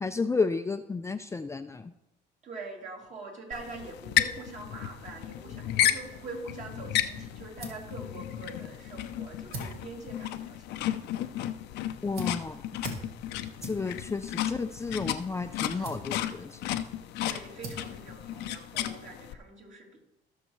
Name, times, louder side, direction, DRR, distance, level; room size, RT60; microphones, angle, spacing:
voice 1, 0.0-1.9 12.0-12.6 13.6-16.7, left 4 dB, 15° left, 8 dB, 0.5 m, -32 dB
voice 2, 2.4-10.6 13.3-13.6 15.7-15.9 17.2-20.0, right 3 dB, 45° right, -2 dB, 3.1 m, -44 dB
sound 1, 3.5-19.3, left 12 dB, 85° left, 0.7 m, -33 dB
sound 2, 7.0-19.1, right 2 dB, 65° right, 2.5 m, -47 dB
19.0 x 6.5 x 3.2 m, 0.89 s
cardioid pair, 110°, 17 cm